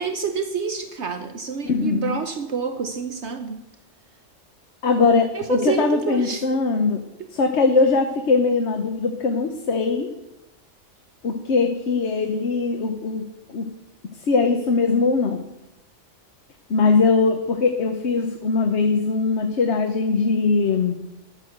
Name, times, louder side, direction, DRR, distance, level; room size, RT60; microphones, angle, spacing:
voice 1, 0.0-3.6 5.3-6.4, right 6 dB, 65° right, 6 dB, 1.2 m, -27 dB
voice 2, 1.6-2.2 4.8-7.0 7.3-10.1 11.2-13.2 13.5-13.7 14.3-15.4 16.7-21.0, left 4 dB, 65° left, 4 dB, 1.3 m, -21 dB
12.0 x 8.2 x 7.9 m, 0.92 s
omnidirectional pair, 1.3 m